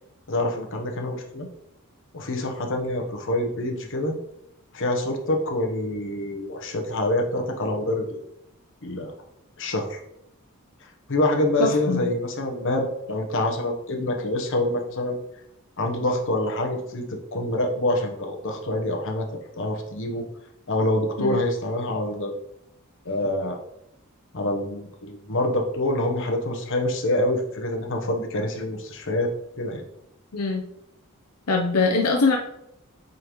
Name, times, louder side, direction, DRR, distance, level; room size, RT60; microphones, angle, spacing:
voice 1, 0.3-1.5 2.1-4.2 4.7-8.2 8.8-9.1 9.6-10.0 11.1-15.2 15.8-19.3 19.6-20.2 20.7-22.3 23.0-23.6 24.3-29.3 29.6-29.8, left 1 dB, 60° left, 3 dB, 1.0 m, -26 dB
voice 2, 11.6-12.0 21.2-21.4 30.3-30.6 31.5-32.4, left 3 dB, 85° left, 2 dB, 0.7 m, -22 dB
8.3 x 3.9 x 3.1 m, 0.80 s
head